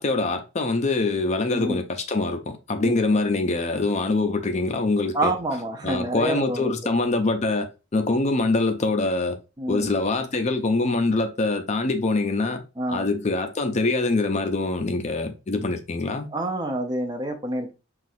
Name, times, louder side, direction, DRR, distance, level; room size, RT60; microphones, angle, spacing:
voice 1, 0.0-5.3 5.8-9.4 9.7-12.6 12.9-16.3, left 3 dB, 35° left, 0.5 m, -24 dB
voice 2, 1.5-1.8 2.8-3.2 5.1-6.7 9.6-9.9 12.8-13.1 16.3-17.7, right 1 dB, 20° right, 0.5 m, -28 dB
5.8 x 2.4 x 2.6 m
head